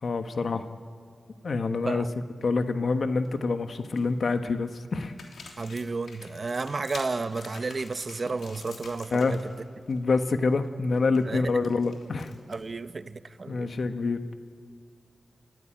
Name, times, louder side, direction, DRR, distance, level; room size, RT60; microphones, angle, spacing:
voice 1, 0.0-0.6 1.4-2.0 2.4-5.1 9.1-9.4 9.9-12.3 13.5-14.3, left 4 dB, 65° left, 1.4 m, -26 dB
sound 1, 3.0-3.3 3.7-4.3 4.9-9.6 9.9-10.1 10.5-12.8, left 4 dB, 85° left, 3.1 m, -48 dB
voice 2, 5.6-9.4 11.2-11.7 12.5-13.7, right 3 dB, 50° right, 0.9 m, -32 dB
30.0 x 15.0 x 9.0 m
cardioid pair, 55°, 0 cm